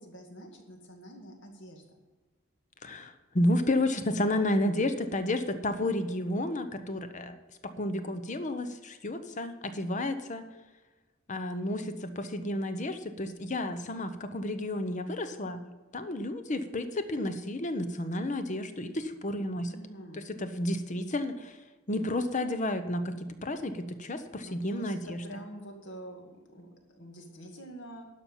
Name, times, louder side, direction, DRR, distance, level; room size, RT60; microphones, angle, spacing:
voice 1, 0.0-1.8 19.7-20.3 24.5-28.1, right 1 dB, 60° left, 3 dB, 2.2 m, -46 dB
voice 2, 2.8-7.4 7.6-10.5 11.3-15.7 15.9-19.7 20.1-21.6 21.9-25.2, left 1 dB, 35° left, 10 dB, 0.9 m, -31 dB
12.0 x 5.6 x 9.0 m, 1.2 s
head